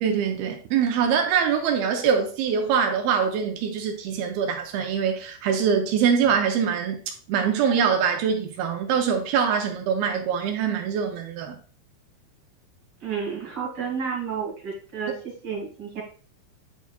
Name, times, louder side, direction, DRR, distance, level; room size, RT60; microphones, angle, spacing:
voice 1, 0.0-7.0 7.3-11.6, right 7 dB, 80° right, 2.4 m, -23 dB
voice 2, 13.0-16.0, right 6 dB, 35° right, 1.7 m, -31 dB
9.2 x 4.5 x 2.3 m
omnidirectional pair, 4.6 m